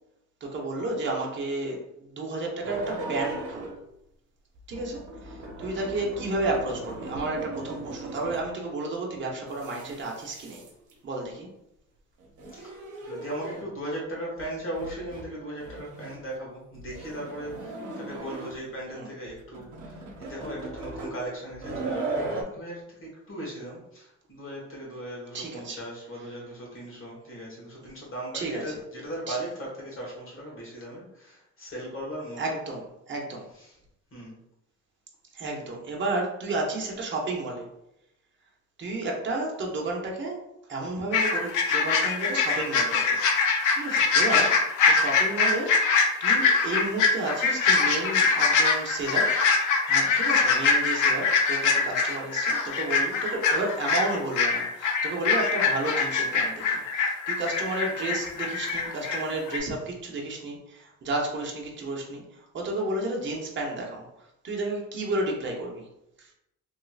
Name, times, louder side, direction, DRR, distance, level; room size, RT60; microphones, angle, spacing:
voice 1, 0.4-3.7 4.7-10.6 11.0-11.5 18.9-19.1 25.3-25.8 28.3-28.8 29.3-29.4 32.4-33.4 35.3-37.7 38.8-40.4 40.7-43.2 43.8-45.8 46.2-64.1 64.4-65.9 66.2-66.3, right 2 dB, 40° right, -1 dB, 0.8 m, -32 dB
sound 1, 2.6-3.9 4.5-8.6 9.4-10.9 12.2-13.8 14.4-14.5 14.7-15.3 15.6-16.2 16.7-18.7 19.3-22.4, right 2 dB, 80° right, 0.8 m, -37 dB
voice 2, 13.0-32.6 33.5-33.8 34.1-34.3, right 1 dB, 45° left, -4 dB, 1.4 m, -38 dB
sound 2, 41.1-59.2 59.5-59.6, left 5 dB, 85° left, 0.6 m, -23 dB
3.1 x 2.9 x 2.4 m, 0.84 s
cardioid pair, 90°, 30 cm